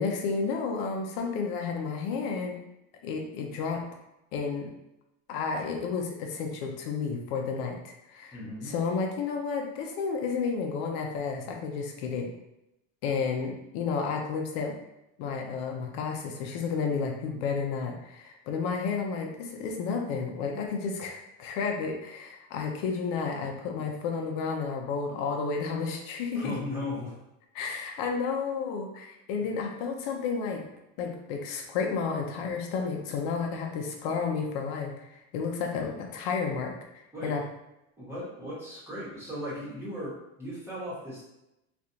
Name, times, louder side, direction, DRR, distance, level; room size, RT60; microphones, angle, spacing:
voice 1, 0.0-2.6 3.0-3.8 4.3-4.7 5.3-8.4 8.6-12.3 13.0-14.8 15.2-26.5 27.5-30.6 31.0-36.7 37.2-37.4, left 5 dB, 60° left, 2 dB, 0.7 m, -31 dB
voice 2, 8.3-8.7 26.3-27.2 37.1-37.4 38.0-41.2, left 1 dB, 10° right, -9 dB, 1.2 m, -37 dB
3.3 x 2.5 x 2.7 m, 0.88 s
cardioid pair, 155°, 32 cm